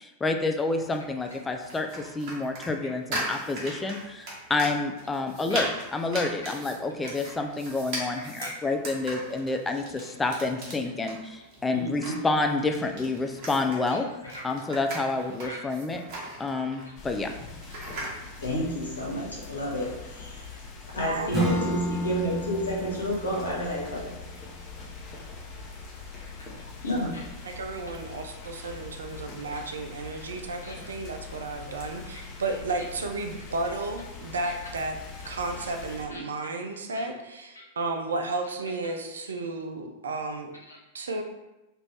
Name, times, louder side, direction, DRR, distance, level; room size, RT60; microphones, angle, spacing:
voice 1, 0.2-14.0 14.4-16.0 16.4-17.3, left 3 dB, 15° left, 4 dB, 0.3 m, -29 dB
sound 1, 0.7-18.2, right 1 dB, 45° right, 1.0 m, -39 dB
voice 2, 8.2-8.5 11.7-12.3 14.3-14.4 15.4-15.6 18.4-20.6 20.9-24.1 26.8-27.2 29.5-29.6 30.6-30.7 36.1-36.2 36.9-37.0 37.6-37.7 40.7-40.8, equal, 75° left, -2 dB, 0.8 m, -31 dB
sound 2, 17.0-36.1, left 4 dB, 35° left, 0.7 m, -43 dB
voice 3, 21.0-21.8 27.4-35.0 35.3-40.5 40.9-41.2, right 3 dB, 70° right, 5 dB, 0.4 m, -33 dB
Acoustic guitar / Strum, 21.3-26.5, equal, 20° right, 0.8 m, -33 dB
3.0 x 2.5 x 3.3 m, 0.99 s
figure-of-eight pair, 90°, 0 cm